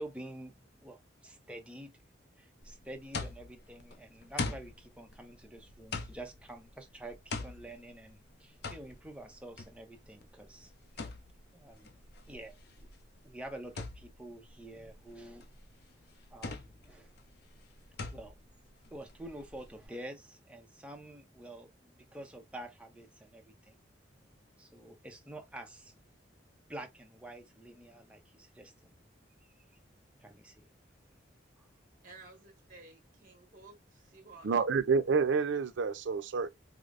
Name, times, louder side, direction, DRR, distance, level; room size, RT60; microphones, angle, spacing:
voice 1, 0.0-1.9 2.4-10.7 11.5-11.9 12.3-12.9 13.2-15.5 16.3-17.1 18.1-18.4 18.9-23.8 24.6-26.0 26.7-28.9 29.4-29.6 30.2-30.7 31.6-31.7, right 1 dB, 5° right, 0.6 m, -48 dB
sound 1, 2.6-19.9, left 3 dB, 55° left, 0.5 m, -43 dB
voice 2, 32.0-34.6, right 3 dB, 45° right, 1.3 m, -54 dB
voice 3, 34.4-36.5, right 5 dB, 75° right, 0.4 m, -28 dB
4.8 x 2.0 x 2.4 m
head